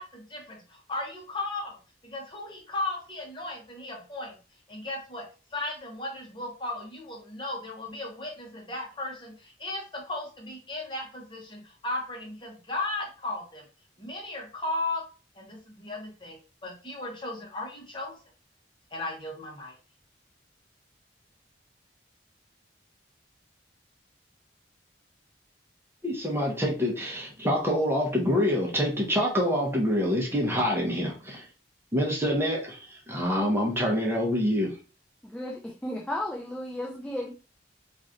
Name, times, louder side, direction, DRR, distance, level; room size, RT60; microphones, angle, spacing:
voice 1, 0.0-1.8 2.0-4.4 4.7-5.2 5.5-13.6 14.0-15.0 15.3-18.2 18.9-19.7, left 2 dB, 25° left, 1.1 m, -36 dB
voice 2, 26.0-31.4 31.9-34.7, equal, 15° right, 0.8 m, -26 dB
voice 3, 35.2-37.3, left 1 dB, 5° left, 0.4 m, -34 dB
3.1 x 2.5 x 3.8 m
head